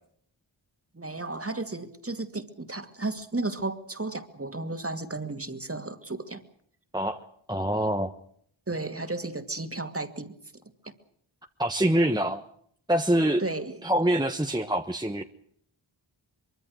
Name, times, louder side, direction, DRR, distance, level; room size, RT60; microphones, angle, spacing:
voice 1, 0.9-6.4 8.7-10.3 10.9-11.0 13.4-13.8, right 2 dB, 25° right, 8 dB, 2.4 m, -33 dB
voice 2, 7.5-8.1 11.6-12.4 12.9-13.4 13.8-15.2, right 1 dB, 10° right, 5 dB, 1.3 m, -25 dB
24.0 x 23.5 x 6.5 m, 0.65 s
wide cardioid pair, 70°, 49 cm